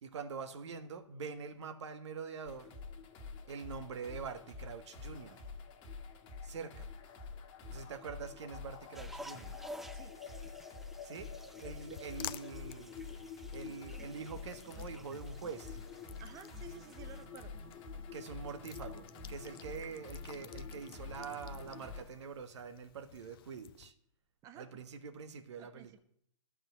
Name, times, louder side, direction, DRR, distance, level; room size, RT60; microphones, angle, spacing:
voice 1, 0.0-2.7 3.5-5.4 6.4-6.9 7.7-9.6 11.0-11.3 11.6-12.9 13.5-15.8 18.1-23.9 24.5-26.0, right 5 dB, 60° right, 9 dB, 1.5 m, -45 dB
sound 1, 2.5-22.0, left 5 dB, 30° left, 1.7 m, -47 dB
sound 2, 8.9-17.3, equal, ahead, 0.3 m, -53 dB
sound 3, 11.6-23.9, left 12 dB, 45° left, 0.6 m, -53 dB
voice 2, 16.2-17.5 24.4-24.7 25.6-26.0, right 9 dB, 20° right, 10 dB, 0.8 m, -53 dB
12.5 x 5.5 x 8.0 m, 0.68 s
hypercardioid pair, 135°, 16 cm